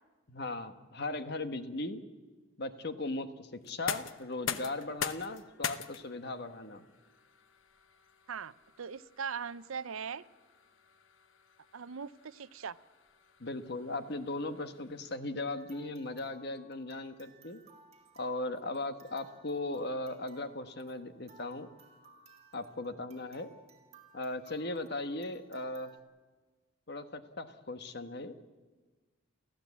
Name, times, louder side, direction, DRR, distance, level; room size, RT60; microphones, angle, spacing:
voice 1, 0.3-2.0 2.6-6.8 13.4-17.6 18.2-21.7 22.5-23.5 24.1-25.9 26.9-28.5, left 2 dB, 50° left, 10 dB, 1.3 m, -38 dB
sound 1, 3.6-15.4, left 7 dB, 70° left, 0.9 m, -44 dB
voice 2, 8.3-10.2 11.7-12.8, right 6 dB, 80° right, 16 dB, 0.6 m, -40 dB
sound 2, 15.5-26.0, right 3 dB, 30° right, 3.0 m, -60 dB
30.0 x 14.5 x 8.4 m, 1.3 s
head